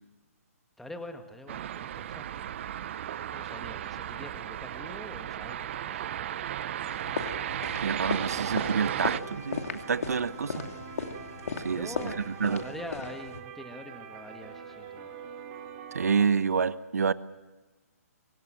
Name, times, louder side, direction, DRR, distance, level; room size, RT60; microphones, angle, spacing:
voice 1, 0.8-2.4 3.3-7.2 10.5-10.7 11.7-15.1, left 1 dB, 5° left, 6 dB, 1.7 m, -45 dB
sound 1, 1.5-9.2, right 11 dB, 50° right, 0.8 m, -35 dB
sound 2, 6.9-13.4, left 5 dB, 65° left, 2.5 m, -37 dB
voice 2, 7.8-10.7 11.6-12.6 15.9-17.1, right 6 dB, 75° right, 16 dB, 1.0 m, -28 dB
sound 3, 8.1-16.3, right 8 dB, 30° right, 3.0 m, -45 dB
24.5 x 18.0 x 7.8 m, 1.2 s
hypercardioid pair, 135°, 8 cm